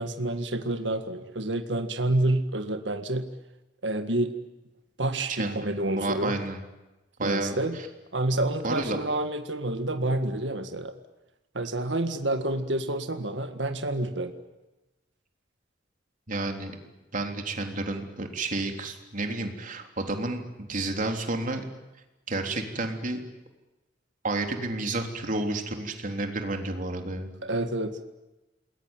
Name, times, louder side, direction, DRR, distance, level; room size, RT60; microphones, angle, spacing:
voice 1, 0.0-3.3 3.8-4.3 5.0-6.4 7.2-7.8 8.1-10.9 11.5-14.3 27.4-28.0, right 1 dB, 80° right, 8 dB, 1.9 m, -28 dB
voice 2, 5.9-6.6 7.2-7.9 8.6-9.0 16.3-16.7 17.1-20.4 20.7-21.6 22.3-23.2 24.2-27.3, right 2 dB, 45° right, 4 dB, 3.5 m, -30 dB
28.5 x 21.5 x 9.1 m, 1.1 s
head